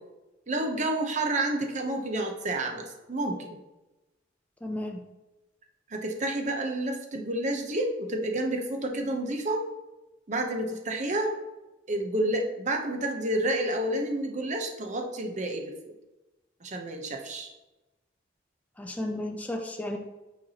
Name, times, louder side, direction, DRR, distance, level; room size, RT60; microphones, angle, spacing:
voice 1, 0.5-3.6 5.9-9.6 10.3-11.3 11.9-15.9 16.6-17.5, right 1 dB, 40° right, 3 dB, 0.8 m, -30 dB
voice 2, 4.6-5.0 18.8-20.0, left 1 dB, 10° left, 2 dB, 0.5 m, -33 dB
8.7 x 4.6 x 2.9 m, 1.1 s
head